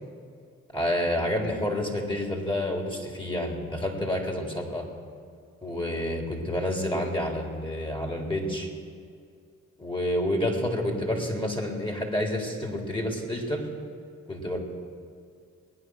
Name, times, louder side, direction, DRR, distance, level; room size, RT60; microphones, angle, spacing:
voice 1, 0.7-4.9 5.6-8.7 9.8-13.6 14.3-14.6, left 1 dB, 15° left, 1 dB, 3.7 m, -29 dB
20.0 x 9.5 x 6.5 m, 2.3 s
supercardioid pair, 55°, 31 cm